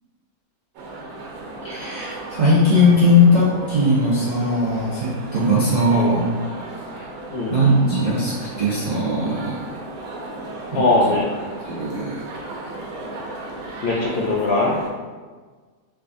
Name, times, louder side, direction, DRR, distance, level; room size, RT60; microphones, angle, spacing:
sound 1, 0.7-14.9, right 2 dB, 75° right, 1.1 m, -35 dB
voice 1, 1.6-6.2 6.9-7.0 7.5-9.6 10.7-10.8 11.6-12.3, left 1 dB, 55° right, -8 dB, 0.4 m, -19 dB
voice 2, 5.9-6.2 7.3-7.6 10.7-11.3 13.8-14.7, left 2 dB, 65° left, -4 dB, 0.6 m, -20 dB
3.4 x 3.3 x 2.5 m, 1.4 s
omnidirectional pair, 1.5 m